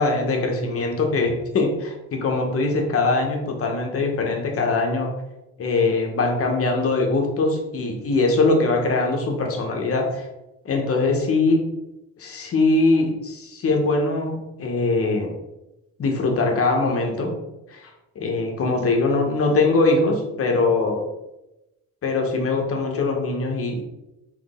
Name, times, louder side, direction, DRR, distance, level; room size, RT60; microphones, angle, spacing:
voice 1, 0.0-5.1 5.6-10.3 10.6-11.6 12.2-15.3 16.0-17.4 17.7-17.9 18.1-21.0 22.0-23.8, left 3 dB, 50° left, 2 dB, 1.0 m, -22 dB
3.8 x 3.1 x 3.6 m, 0.95 s
cardioid pair, 90°, 30 cm